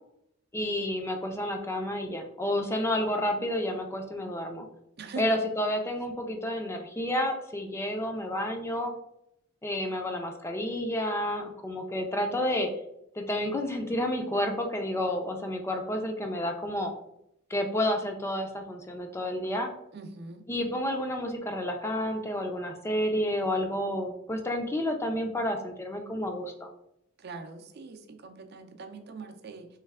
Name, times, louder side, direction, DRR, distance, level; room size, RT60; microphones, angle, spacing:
voice 1, 0.5-4.7 5.2-8.9 9.6-12.7 13.1-16.9 17.5-19.7 20.5-26.7, left 1 dB, 15° left, 4 dB, 0.4 m, -30 dB
voice 2, 19.9-20.4 27.2-29.7, right 4 dB, 55° right, 6 dB, 0.5 m, -42 dB
3.2 x 3.2 x 3.5 m, 0.78 s
head